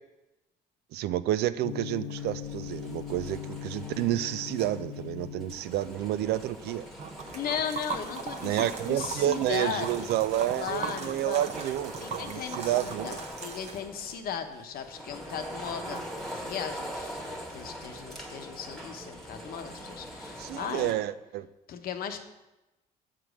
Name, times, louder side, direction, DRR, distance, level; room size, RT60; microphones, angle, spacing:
voice 1, 0.9-6.9 8.4-13.2 20.4-21.5, right 13 dB, 75° right, 15 dB, 0.4 m, -30 dB
Gong, 1.6-9.7, left 10 dB, 85° left, 0.4 m, -42 dB
sound 1, 2.1-20.9, equal, ahead, 1.4 m, -43 dB
Liquid, 7.0-14.2, right 5 dB, 40° right, 0.9 m, -39 dB
voice 2, 7.3-10.1 10.6-11.4 11.9-21.0 21.7-22.2, left 8 dB, 60° left, 7 dB, 0.9 m, -37 dB
7.4 x 5.1 x 6.2 m, 0.99 s
cardioid pair, 110°, 17 cm